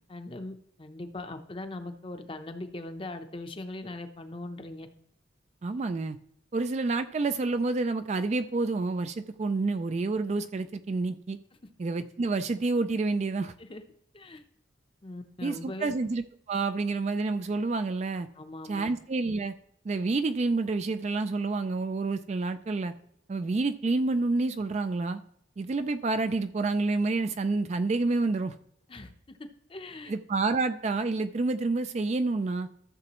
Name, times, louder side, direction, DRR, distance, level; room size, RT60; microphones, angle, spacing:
voice 1, 0.1-4.9 13.6-13.8 14.1-14.4 15.0-16.0 18.3-18.9 28.9-29.4 29.7-30.1, left 2 dB, 25° left, 8 dB, 0.7 m, -40 dB
voice 2, 5.6-6.2 6.5-11.4 11.8-13.5 15.4-18.3 18.7-19.5 19.8-22.9 23.3-25.2 25.6-28.6 30.1-32.7, right 3 dB, 35° right, 10 dB, 0.3 m, -28 dB
14.0 x 6.9 x 3.0 m, 0.71 s
head